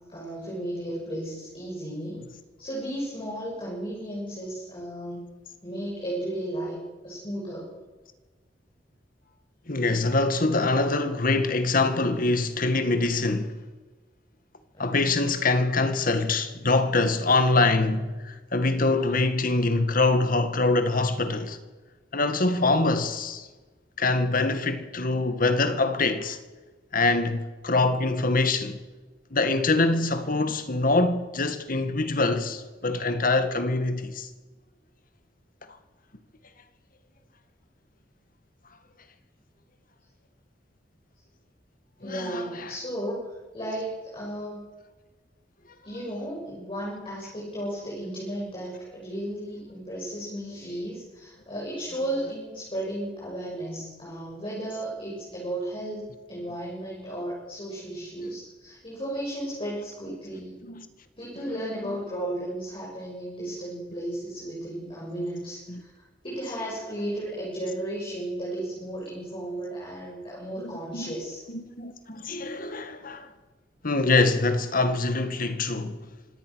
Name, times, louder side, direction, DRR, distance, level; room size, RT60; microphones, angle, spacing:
voice 1, 0.1-2.3 2.6-5.3 5.6-7.7 14.7-15.0 42.0-43.2 43.5-44.7 45.8-60.6 61.2-71.4, right 1 dB, 30° left, 7.2 m, -34 dB
voice 2, 9.7-13.6 14.8-21.6 22.1-23.5 24.0-26.4 26.9-28.8 29.3-34.3 42.0-42.7 60.6-60.9 61.5-62.0 65.7-65.8 70.6-71.1 71.5-73.3 73.8-76.0, left 3 dB, 50° left, 2.0 m, -24 dB
25.5 x 18.0 x 6.5 m
head